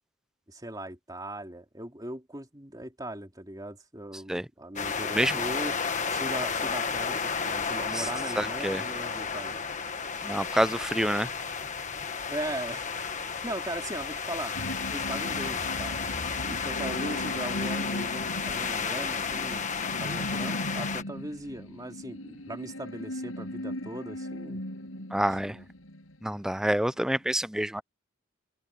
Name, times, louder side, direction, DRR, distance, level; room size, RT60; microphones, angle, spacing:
voice 1, 0.5-5.7 6.1-9.6 12.3-13.1 13.4-14.5 14.9-16.0 16.5-19.6 20.0-24.6 25.4-25.7, right 1 dB, 20° right, 3.5 m, -39 dB
sound 1, 4.8-21.0, left 5 dB, 35° left, 1.4 m, -32 dB
voice 2, 8.4-8.8 10.2-11.3 25.1-25.6 26.2-27.8, right 1 dB, 5° right, 0.4 m, -27 dB
sound 2, 14.5-26.3 26.7-26.8, left 1 dB, 80° left, 7.9 m, -38 dB
head